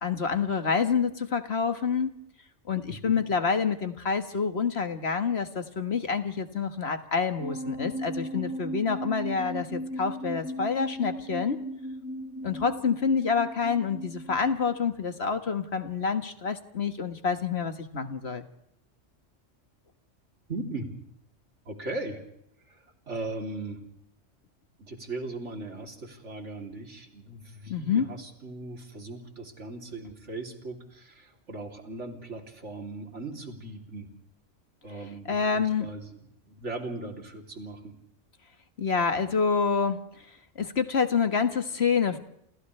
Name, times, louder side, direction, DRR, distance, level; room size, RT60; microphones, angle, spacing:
voice 1, 0.0-2.1 2.7-11.6 12.4-18.4 27.7-28.1 35.3-35.9 38.8-40.0 40.5-42.2, left 5 dB, 55° left, 8 dB, 1.7 m, -27 dB
sound 1, 7.4-14.8, equal, 80° left, 6.7 m, -36 dB
voice 2, 20.5-20.9 21.7-22.2 22.7-23.8 24.8-34.1 34.8-36.2 36.5-37.9, right 2 dB, 70° right, 3 dB, 3.5 m, -38 dB
28.5 x 28.0 x 3.3 m, 0.72 s
omnidirectional pair, 1.3 m